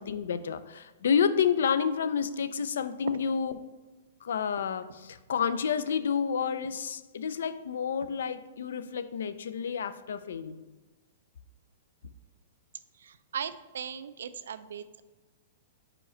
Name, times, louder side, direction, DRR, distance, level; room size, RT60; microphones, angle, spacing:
voice 1, 0.0-3.6 4.2-10.6, left 7 dB, 80° left, 13 dB, 0.4 m, -29 dB
voice 2, 13.0-15.0, right 8 dB, 85° right, 13 dB, 0.4 m, -38 dB
4.9 x 4.9 x 4.3 m, 1.3 s
hypercardioid pair, 170°, 0 cm